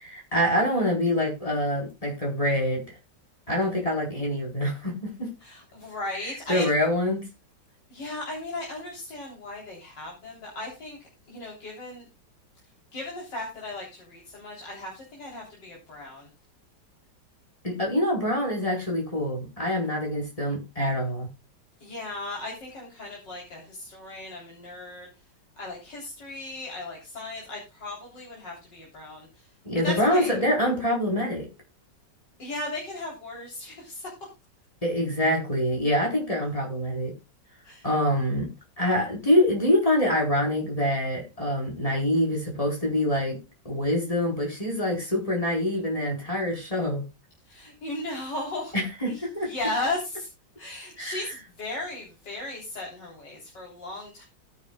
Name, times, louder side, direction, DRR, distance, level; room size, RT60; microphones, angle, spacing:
voice 1, 0.0-2.8 3.5-5.3 6.5-7.2 17.6-21.3 29.6-31.5 34.8-37.1 37.8-38.5 38.8-43.4 43.6-47.0 48.7-49.5 51.0-51.2, left 1 dB, 20° left, 0 dB, 4.6 m, -25 dB
voice 2, 5.4-6.7 7.9-11.0 11.3-12.1 12.9-16.3 21.8-25.1 25.6-29.5 29.8-30.4 32.4-34.1 37.6-37.9 47.5-48.7 49.0-50.3 50.6-54.2, left 2 dB, 75° left, -2 dB, 4.2 m, -36 dB
18.0 x 9.6 x 2.3 m, 0.26 s
omnidirectional pair, 1.9 m